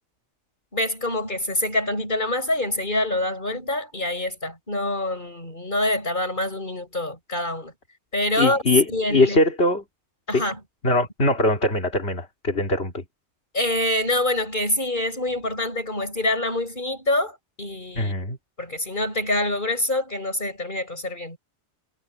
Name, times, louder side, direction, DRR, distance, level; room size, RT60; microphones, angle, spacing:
voice 1, 0.7-7.7 8.1-8.6 8.9-9.4 10.3-10.6 13.5-18.1 18.6-21.4, left 1 dB, 45° left, 8.0 m, -26 dB
voice 2, 8.4-9.8 10.3-10.4 10.8-13.0 17.9-18.4, left 2 dB, 60° left, 3.2 m, -22 dB
omnidirectional pair, 1.2 m